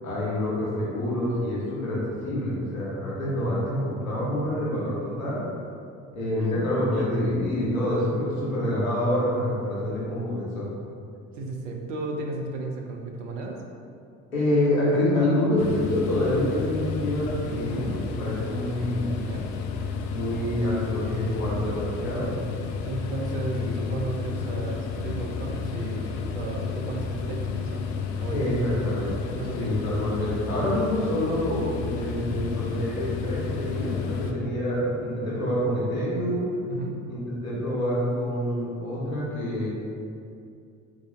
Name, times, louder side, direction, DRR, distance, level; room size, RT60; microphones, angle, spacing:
voice 1, 0.0-5.4 6.1-10.7 14.3-19.1 20.1-22.3 23.5-23.9 28.3-36.5 37.1-39.7, left 1 dB, 75° left, -7 dB, 1.2 m, -27 dB
voice 2, 11.4-13.6 19.2-19.5 22.9-27.8 28.2-28.4 29.4-29.7 36.7-37.1, right 3 dB, 60° right, 1 dB, 0.7 m, -34 dB
sound 1, 15.6-34.3, left 5 dB, 55° left, 0.5 m, -32 dB
3.9 x 3.0 x 3.9 m, 2.4 s
figure-of-eight pair, 60°, 41 cm